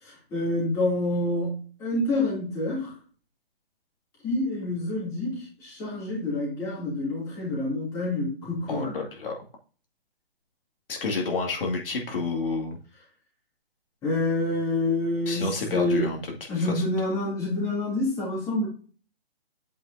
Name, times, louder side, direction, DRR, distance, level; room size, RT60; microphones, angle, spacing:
voice 1, 0.0-3.0 4.2-8.9 14.0-16.2 16.5-18.7, left 2 dB, 10° left, -6 dB, 2.7 m, -27 dB
voice 2, 8.7-9.4 10.9-12.8 15.3-16.4 16.6-16.8, left 3 dB, 60° left, 1 dB, 2.2 m, -29 dB
8.5 x 5.4 x 2.7 m, 0.38 s
hypercardioid pair, 170°, 31 cm